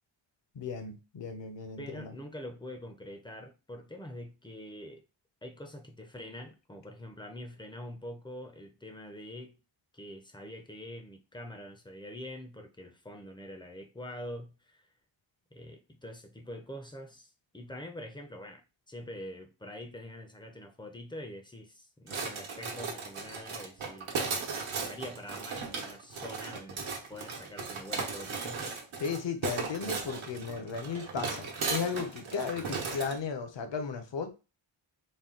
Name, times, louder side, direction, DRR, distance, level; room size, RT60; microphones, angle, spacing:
voice 1, 0.5-2.1 29.0-34.3, left 5 dB, 60° left, 0.8 m, -35 dB
voice 2, 1.8-5.0 5.4-9.6 9.9-14.9 15.5-24.1 24.7-26.8 27.1-28.7, left 1 dB, 10° left, 0.5 m, -45 dB
sound 1, 22.1-33.2, right 4 dB, 70° right, 1.0 m, -36 dB
4.1 x 2.2 x 3.7 m
wide cardioid pair, 145°, 49 cm